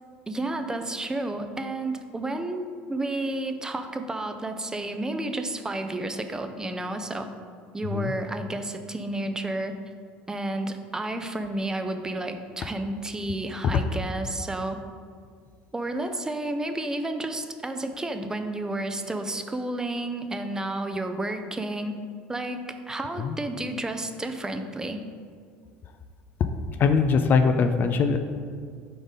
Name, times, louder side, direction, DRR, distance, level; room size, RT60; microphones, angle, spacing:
voice 1, 0.3-7.3 7.7-9.8 10.3-14.8 15.7-21.9 22.3-25.0, right 2 dB, 15° right, 7 dB, 0.5 m, -31 dB
voice 2, 26.8-28.2, left 5 dB, 45° left, 7 dB, 0.4 m, -21 dB
5.0 x 3.9 x 5.3 m, 2.1 s
supercardioid pair, 90°, 5 cm